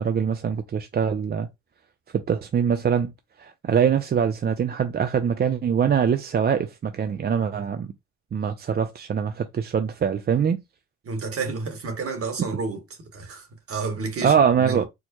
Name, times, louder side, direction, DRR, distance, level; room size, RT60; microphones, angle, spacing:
voice 1, 0.0-1.5 2.1-3.1 3.4-7.9 8.3-10.6 14.2-14.8, right 7 dB, 35° right, 0.4 m, -23 dB
voice 2, 11.0-12.8 13.1-14.8, right 4 dB, 50° right, 1.5 m, -30 dB
4.5 x 2.1 x 2.9 m
cardioid pair, 90°, 30 cm